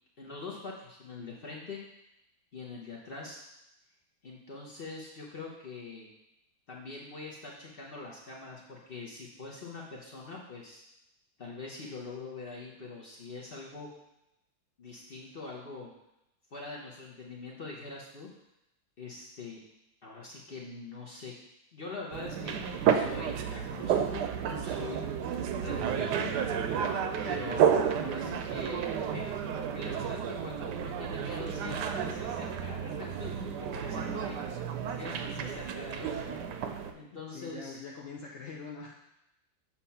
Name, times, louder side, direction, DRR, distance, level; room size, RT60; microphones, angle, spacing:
voice 1, 0.2-1.8 2.5-3.4 4.2-6.1 6.7-10.8 11.4-13.9 14.8-15.9 16.5-18.3 19.0-19.6 20.0-21.3 21.7-22.6 22.9-25.0 25.6-26.3 27.2-29.2 29.7-33.3 33.6-34.6 34.9-36.4 36.9-37.8, left 3 dB, 50° left, -3 dB, 0.7 m, -43 dB
sound 1, 22.1-36.9, right 8 dB, 75° right, 1.1 m, -31 dB
voice 2, 37.1-38.9, left 4 dB, 85° left, -1 dB, 0.6 m, -44 dB
7.2 x 2.9 x 5.6 m, 0.87 s
omnidirectional pair, 2.0 m